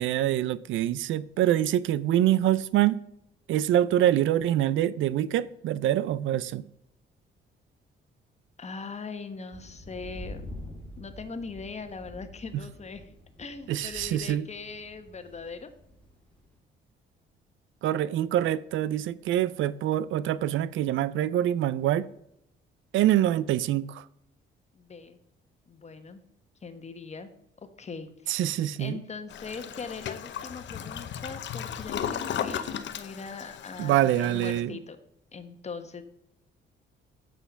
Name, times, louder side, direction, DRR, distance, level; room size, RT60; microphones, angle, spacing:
voice 1, 0.0-3.0 3.5-6.6 13.7-14.5 17.8-22.1 22.9-24.0 28.3-29.0 33.8-34.8, right 12 dB, 75° right, 0.4 m, -25 dB
voice 2, 8.6-10.5 11.0-13.1 13.4-15.7 24.7-25.2 25.7-26.2 26.6-27.3 27.8-28.5 28.8-35.0 35.3-36.0, left 4 dB, 35° left, 1.2 m, -40 dB
sound 1, 9.5-16.6, equal, 5° left, 2.6 m, -46 dB
Toilet flush, 29.3-34.6, left 9 dB, 65° left, 0.8 m, -35 dB
8.4 x 5.8 x 5.6 m
cardioid pair, 90°, 20 cm